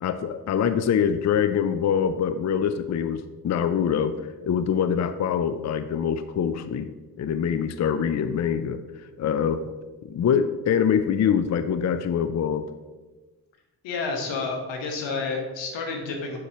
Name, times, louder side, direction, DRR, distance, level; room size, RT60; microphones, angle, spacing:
voice 1, 0.0-6.9 7.2-9.7 10.0-12.6, left 7 dB, 40° left, 11 dB, 0.5 m, -24 dB
voice 2, 13.8-16.4, left 4 dB, 85° left, 2 dB, 1.3 m, -30 dB
9.8 x 4.6 x 3.0 m, 1.2 s
supercardioid pair, 45°, 44 cm